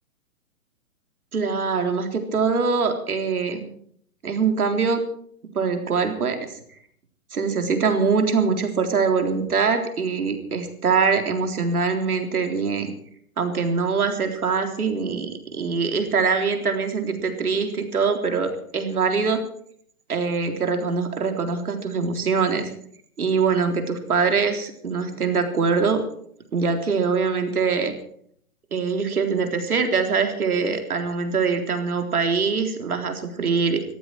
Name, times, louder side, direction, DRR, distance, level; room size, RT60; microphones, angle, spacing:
voice 1, 1.3-3.7 4.2-5.0 5.5-6.5 7.3-12.9 13.4-19.4 20.1-22.7 23.2-26.0 26.5-27.9 28.7-33.8, right 5 dB, 80° right, 5 dB, 3.9 m, -23 dB
21.0 x 14.5 x 4.7 m, 0.63 s
hypercardioid pair, 130°, 44 cm